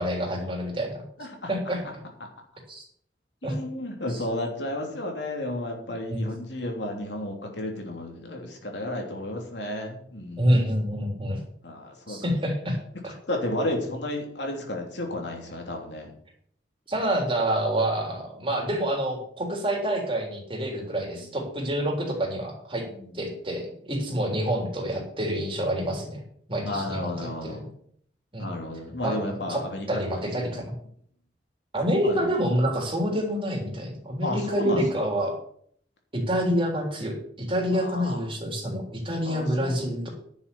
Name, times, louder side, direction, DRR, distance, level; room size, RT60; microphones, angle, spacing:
voice 1, 0.0-1.0 1.5-1.8 2.7-2.8 3.4-3.6 4.1-4.2 6.1-6.3 10.4-11.4 12.1-12.8 13.0-13.1 16.9-22.8 23.1-26.2 26.5-27.1 27.4-27.6 28.3-28.5 29.0-29.2 29.5-29.6 29.9-30.7 31.7-35.3 36.1-40.1, equal, 30° right, 1 dB, 3.5 m, -27 dB
voice 2, 1.2-1.7 3.4-10.7 11.6-12.3 13.3-16.1 21.1-21.2 22.9-23.2 26.6-27.7 28.4-30.6 32.0-32.3 34.2-35.1 37.7-38.3 39.3-39.8, left 1 dB, 75° left, 2 dB, 3.1 m, -33 dB
10.5 x 7.2 x 7.0 m, 0.63 s
head